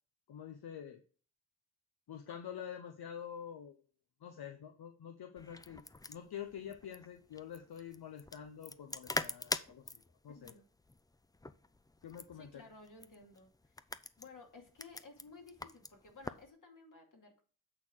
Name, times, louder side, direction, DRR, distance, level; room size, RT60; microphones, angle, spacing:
voice 1, 0.3-1.0 2.1-3.8 4.2-5.8 6.1-10.6 12.0-12.7, left 9 dB, 80° left, 5 dB, 0.9 m, -47 dB
sound 1, 5.4-16.5, left 2 dB, 10° left, 0.4 m, -44 dB
voice 2, 10.3-10.7 12.3-13.7 14.2-17.4, left 3 dB, 55° left, 2 dB, 2.5 m, -56 dB
8.6 x 3.9 x 6.2 m, 0.40 s
cardioid pair, 75°, 38 cm